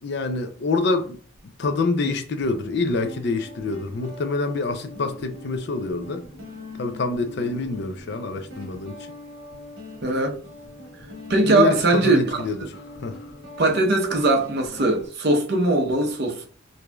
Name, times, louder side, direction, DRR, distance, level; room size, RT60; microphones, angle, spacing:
voice 1, 0.0-1.2 1.6-6.3 6.8-9.0 11.4-13.3, left 3 dB, 50° left, 0.4 m, -26 dB
Guitar, 1.4-1.5 2.4-15.1, left 2 dB, 70° right, 1.2 m, -42 dB
voice 2, 10.0-10.4 11.3-12.4 13.6-16.5, right 2 dB, 50° right, 0.7 m, -20 dB
4.7 x 2.7 x 2.3 m
head